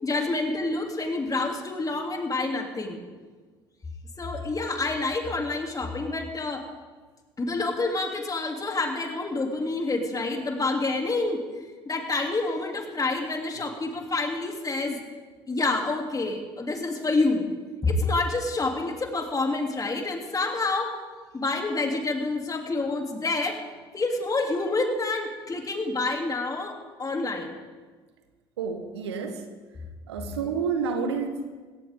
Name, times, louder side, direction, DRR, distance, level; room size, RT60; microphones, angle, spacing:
voice 1, 0.0-3.0 4.2-6.6 7.4-11.4 11.8-15.0 15.5-17.5 17.8-20.9 21.3-23.6 23.9-27.6, left 3 dB, 25° left, 2 dB, 3.1 m, -28 dB
voice 2, 28.6-29.5 30.1-31.5, right 5 dB, 85° right, 7 dB, 1.4 m, -29 dB
19.5 x 17.0 x 3.8 m, 1.4 s
hypercardioid pair, 60°, 14 cm